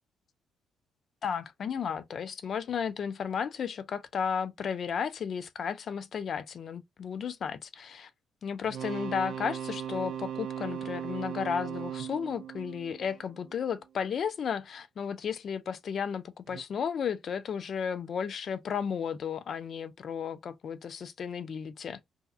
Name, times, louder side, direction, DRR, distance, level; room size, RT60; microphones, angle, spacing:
voice 1, 1.2-8.1 8.4-22.0, left 7 dB, 55° left, 0.4 m, -34 dB
sound 1, 8.6-13.7 16.5-16.6, right 9 dB, 75° right, 0.4 m, -38 dB
2.7 x 2.3 x 2.3 m
cardioid pair, 90°, 0 cm